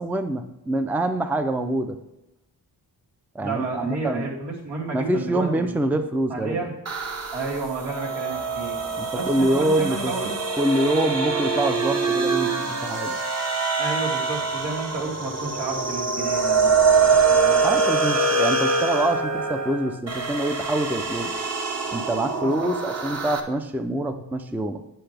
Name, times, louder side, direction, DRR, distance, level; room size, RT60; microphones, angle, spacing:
voice 1, 0.0-2.0 3.3-4.3 4.9-6.6 9.0-10.1 10.6-13.2 17.6-21.3 21.9-24.8, right 1 dB, 5° right, 8 dB, 0.4 m, -25 dB
voice 2, 3.4-5.8 6.3-6.7 7.3-10.4 13.8-17.8 22.4-22.7, right 3 dB, 85° right, -3 dB, 2.7 m, -31 dB
sound 1, 6.9-23.4, right 4 dB, 40° right, 1.0 m, -24 dB
9.6 x 7.9 x 3.4 m, 0.93 s
wide cardioid pair, 115°, 41 cm